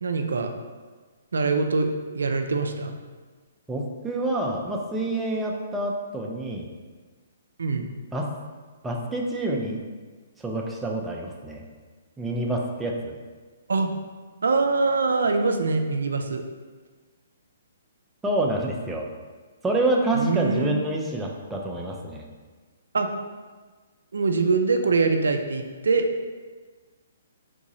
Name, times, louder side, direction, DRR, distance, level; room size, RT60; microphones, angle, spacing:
voice 1, 0.0-0.5 1.3-1.9 2.1-3.0 7.6-7.9 13.7-13.9 14.4-16.4 20.1-20.7 22.9-23.1 24.1-26.1, right 4 dB, 85° right, 6 dB, 0.3 m, -23 dB
voice 2, 3.7-6.7 8.1-8.3 8.8-9.8 10.4-11.6 12.2-13.2 18.2-19.1 19.6-22.3, right 2 dB, 10° right, -1 dB, 0.4 m, -27 dB
3.6 x 2.6 x 3.0 m, 1.4 s
hypercardioid pair, 145°, 0 cm